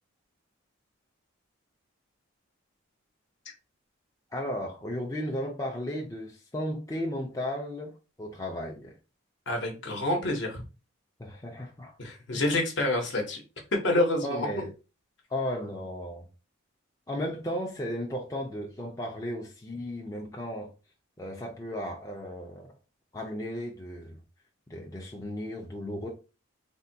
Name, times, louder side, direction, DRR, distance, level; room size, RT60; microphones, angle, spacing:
voice 1, 4.3-9.0 11.2-11.9 12.3-12.4 14.2-14.7 15.3-16.3 17.1-20.7 21.2-22.7 23.1-24.2 24.7-26.1, left 1 dB, 15° left, 0.4 m, -35 dB
voice 2, 9.5-10.6 12.0-13.4 13.8-14.5, left 1 dB, 60° left, 0.8 m, -27 dB
3.4 x 2.2 x 2.6 m
head